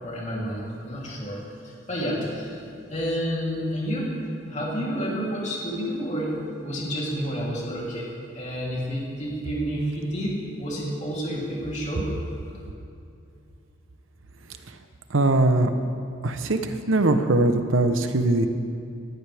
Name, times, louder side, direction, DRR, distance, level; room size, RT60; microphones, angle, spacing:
voice 1, 0.0-1.4 1.6-2.6 2.9-4.1 4.5-6.4 6.6-8.1 8.3-12.1, equal, 35° left, -5 dB, 3.2 m, -29 dB
voice 2, 15.1-15.7 16.2-16.6 16.9-18.5, right 2 dB, 90° right, 8 dB, 0.9 m, -20 dB
19.0 x 14.0 x 3.5 m, 2.6 s
head